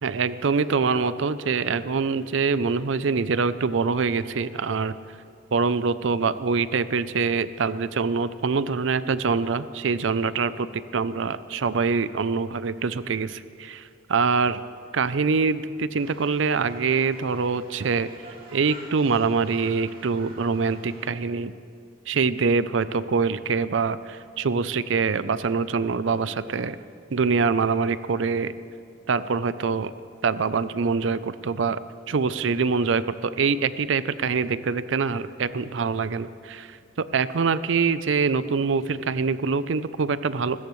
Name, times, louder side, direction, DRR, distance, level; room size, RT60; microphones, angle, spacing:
voice 1, 0.0-5.0 5.5-14.6 14.9-18.1 18.5-21.5 22.1-26.8 27.1-28.5 29.1-29.9 30.2-31.8 32.1-40.6, right 5 dB, 70° right, 14 dB, 0.5 m, -24 dB
sound 1, 15.9-21.1, right 2 dB, 50° right, 2.5 m, -48 dB
25.5 x 13.5 x 3.2 m, 2.4 s
head